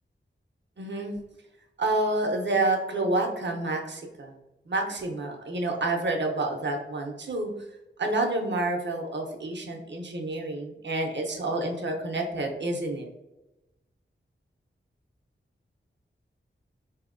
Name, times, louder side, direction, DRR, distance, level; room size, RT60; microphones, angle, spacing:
voice 1, 0.8-1.1 1.8-4.3 4.7-7.5 8.0-13.1, right 2 dB, 60° right, 2 dB, 0.7 m, -28 dB
3.4 x 2.7 x 2.5 m, 0.97 s
wide cardioid pair, 55°, 21 cm